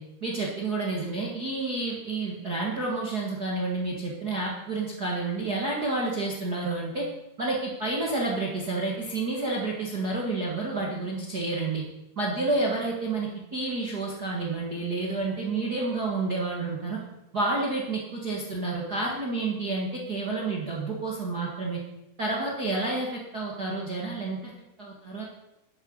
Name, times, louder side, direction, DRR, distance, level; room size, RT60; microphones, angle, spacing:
voice 1, 0.2-7.0 7.4-11.8 12.1-17.0 17.3-21.8 22.2-24.5 24.8-25.2, right 3 dB, 50° right, -2 dB, 1.1 m, -29 dB
12.0 x 11.0 x 5.4 m, 0.92 s
omnidirectional pair, 4.7 m